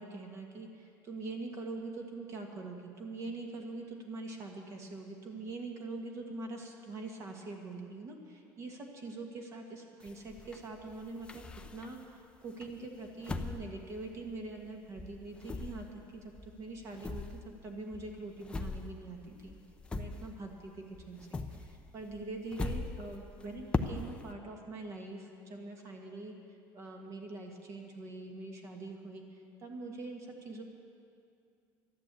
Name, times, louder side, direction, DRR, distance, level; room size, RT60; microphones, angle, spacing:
voice 1, 0.0-11.5 11.7-17.3 17.6-19.6 19.9-30.6, right 2 dB, 35° right, 2 dB, 1.6 m, -44 dB
sound 1, 10.0-12.1 12.6-14.7 15.0-20.7 20.9-24.3, left 3 dB, 10° left, 0.6 m, -40 dB
12.5 x 10.5 x 8.3 m, 2.5 s
cardioid pair, 160°, 8 cm